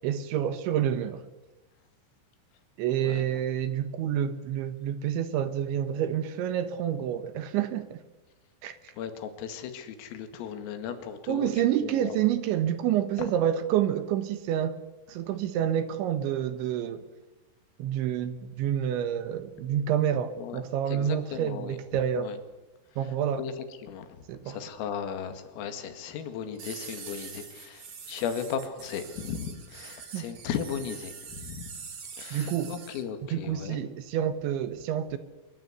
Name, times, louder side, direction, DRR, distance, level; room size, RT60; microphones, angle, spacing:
voice 1, 0.0-1.2 2.8-8.0 8.6-8.9 11.3-14.8 15.1-17.0 17.8-22.3 23.0-23.4 24.3-24.6 30.1-30.2 32.3-32.7 33.3-35.2, right 10 dB, 70° right, 11 dB, 3.3 m, -28 dB
voice 2, 3.0-3.4 8.9-12.2 13.2-13.3 20.4-22.4 22.9-31.8 32.2-33.8, left 7 dB, 80° left, 8 dB, 4.7 m, -37 dB
sound 1, 26.5-33.0, right 6 dB, 45° right, 2.0 m, -44 dB
24.0 x 23.5 x 8.0 m, 1.0 s
omnidirectional pair, 6.0 m